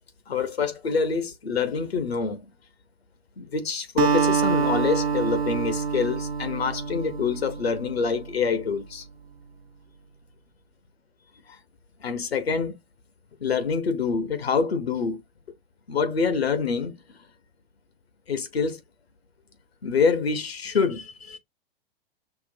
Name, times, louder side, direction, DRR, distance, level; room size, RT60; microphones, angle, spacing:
voice 1, 0.3-2.4 3.4-9.0 12.0-12.7 13.4-15.2 15.9-16.9 18.3-18.8 19.8-21.4, left 5 dB, 80° left, 0.9 m, -26 dB
Acoustic guitar, 4.0-8.5, right 6 dB, 75° right, 0.7 m, -26 dB
5.9 x 2.1 x 2.7 m
figure-of-eight pair, 105°, 30 cm